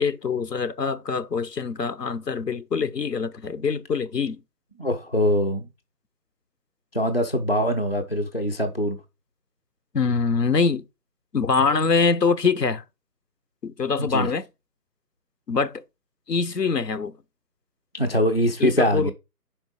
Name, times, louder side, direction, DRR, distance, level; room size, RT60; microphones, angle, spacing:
voice 1, 0.0-4.4 9.9-10.8 11.3-12.8 13.6-14.5 15.5-15.8 16.3-17.1 18.6-19.1, left 5 dB, 75° left, 0.8 m, -24 dB
voice 2, 4.8-5.7 6.9-9.0 14.0-14.3 17.9-19.1, equal, 35° left, 0.6 m, -23 dB
5.1 x 4.4 x 4.8 m
figure-of-eight pair, 160°, 50 cm